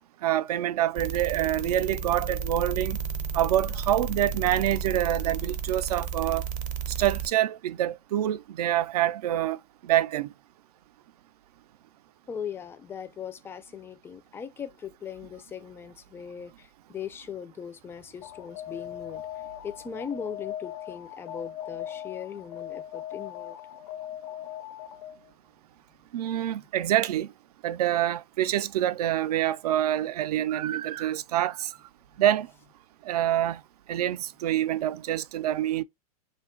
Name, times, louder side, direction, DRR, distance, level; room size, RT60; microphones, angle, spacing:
voice 1, 0.2-3.0 3.3-6.4 7.0-9.6 9.8-10.3 26.1-27.3 27.6-31.7 32.2-32.5 33.1-33.6 33.9-35.8, right 12 dB, 80° right, 0.4 m, -26 dB
sound 1, 0.9-7.3, right 6 dB, 40° right, 0.6 m, -32 dB
voice 2, 12.3-19.2 19.6-23.6, left 7 dB, 10° left, 0.3 m, -39 dB
Alarm, 18.2-25.3, left 11 dB, 65° left, 0.5 m, -39 dB
2.5 x 2.3 x 3.6 m
hypercardioid pair, 125°, 20 cm